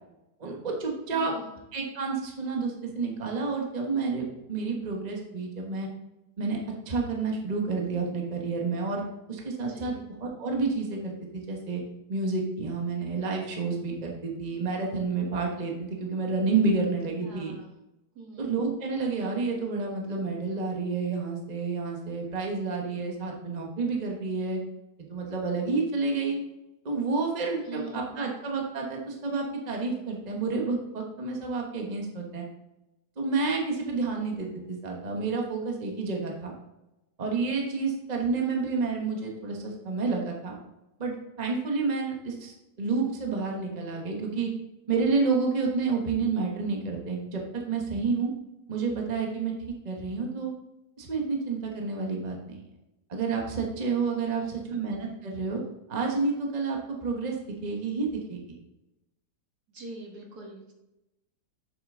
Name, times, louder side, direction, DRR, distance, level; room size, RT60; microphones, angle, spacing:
voice 1, 0.4-1.3 1.7-5.9 6.4-6.6 6.9-9.0 9.3-10.0 10.2-11.8 12.1-17.5 18.4-24.6 25.1-26.4 26.8-32.4 33.2-36.5 37.2-40.6 41.0-44.5 44.9-47.4 47.7-48.3 48.7-49.5 49.8-50.5 51.0-52.6 53.1-55.6 55.9-57.4 57.6-58.4, right 4 dB, 25° right, 0 dB, 1.2 m, -29 dB
voice 2, 1.1-1.6 9.7-10.0 17.2-17.7 18.1-18.5 27.6-28.2 54.2-54.8 59.7-60.7, right 2 dB, 65° right, 0 dB, 2.2 m, -43 dB
7.7 x 6.7 x 3.7 m, 0.95 s
omnidirectional pair, 1.8 m